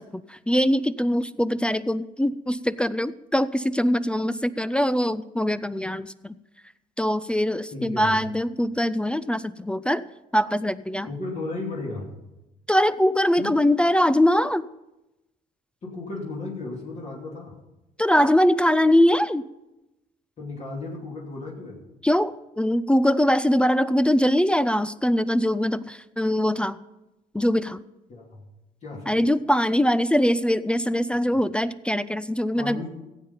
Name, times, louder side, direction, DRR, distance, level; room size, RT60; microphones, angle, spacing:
voice 1, 0.0-6.4 7.0-10.0 10.3-11.1 12.7-14.7 18.0-19.4 22.0-26.8 27.3-27.8 29.1-32.8, equal, 5° left, 16 dB, 0.3 m, -22 dB
voice 2, 7.7-8.2 11.0-12.1 13.4-13.5 15.8-17.5 20.4-21.8 28.1-28.5 28.8-29.2 32.6-32.9, left 3 dB, 40° left, -3 dB, 2.8 m, -34 dB
15.5 x 8.0 x 5.5 m, 0.99 s
cardioid pair, 110°, 17 cm